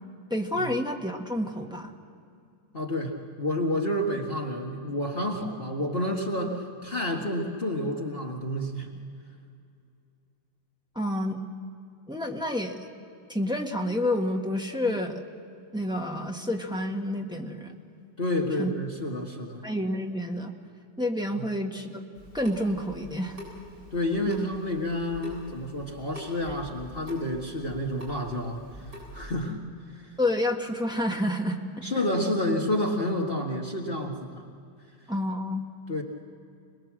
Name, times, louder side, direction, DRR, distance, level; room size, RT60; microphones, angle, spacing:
voice 1, 0.3-1.9 10.9-11.4 12.1-12.8 13.3-15.2 15.7-17.7 18.6-18.7 19.6-20.5 21.0-22.0 22.3-23.4 24.3-24.5 30.2-32.1 35.1-35.6, left 1 dB, 5° right, 1 dB, 1.4 m, -29 dB
voice 2, 2.7-8.9 18.2-19.6 21.3-21.5 23.9-28.6 29.1-29.6 29.9-30.1 31.8-34.5 35.9-36.0, left 1 dB, 30° left, 0 dB, 1.9 m, -29 dB
Water tap faucet / Sink (filling or washing) / Drip, 22.1-29.3, equal, 30° right, 8.3 m, -45 dB
27.0 x 20.5 x 7.5 m, 2.5 s
omnidirectional pair, 2.0 m